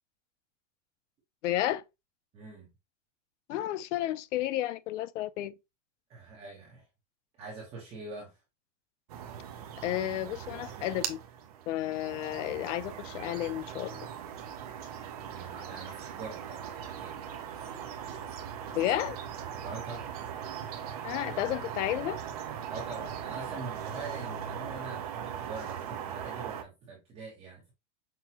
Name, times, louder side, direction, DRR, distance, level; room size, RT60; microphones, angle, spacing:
voice 1, 1.4-1.8 3.5-5.5 9.8-11.2 11.7-14.1 18.7-19.2 21.0-22.2, left 13 dB, 75° left, 0.5 m, -32 dB
voice 2, 2.3-2.7 6.1-6.8 7.4-8.4 15.3-17.2 19.6-20.1 22.7-27.7, right 3 dB, 15° right, 0.8 m, -44 dB
sound 1, 9.1-26.6, right 8 dB, 35° right, 0.4 m, -40 dB
5.8 x 2.1 x 2.8 m
supercardioid pair, 180°, 37 cm